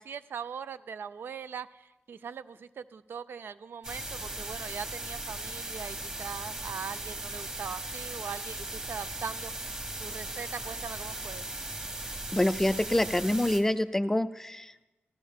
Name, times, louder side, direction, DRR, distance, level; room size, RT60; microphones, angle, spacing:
voice 1, 0.0-9.5 10.0-11.6, right 6 dB, 70° right, 14 dB, 0.4 m, -41 dB
sound 1, 3.8-13.6, right 2 dB, 20° right, 1.5 m, -38 dB
voice 2, 12.3-14.8, left 1 dB, 10° left, 13 dB, 0.3 m, -26 dB
15.5 x 12.5 x 3.6 m, 1.1 s
wide cardioid pair, 170°, 4 cm